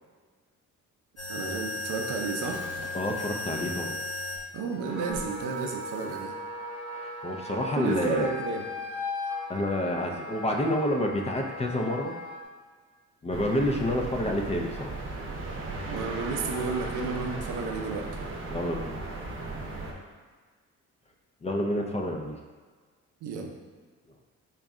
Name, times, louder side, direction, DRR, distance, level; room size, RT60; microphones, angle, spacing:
sound 1, 1.2-4.4 5.1-6.2, left 2 dB, 55° left, 1.0 m, -35 dB
voice 1, 1.3-2.7 4.5-6.3 7.8-8.6 15.9-18.2 23.2-23.6, right 4 dB, 90° right, 2 dB, 0.6 m, -32 dB
voice 2, 2.9-4.0 6.9-8.3 9.5-12.2 13.2-14.9 18.5-19.0 21.4-22.4, left 1 dB, 20° left, 2 dB, 0.4 m, -29 dB
Wind instrument woodwind instrument, 4.7-12.4, left 1 dB, 90° left, 1.1 m, -37 dB
sound 2, 13.3-19.9, right 2 dB, 45° right, 0.8 m, -36 dB
4.0 x 2.2 x 3.6 m, 1.5 s
cardioid pair, 90°, 30 cm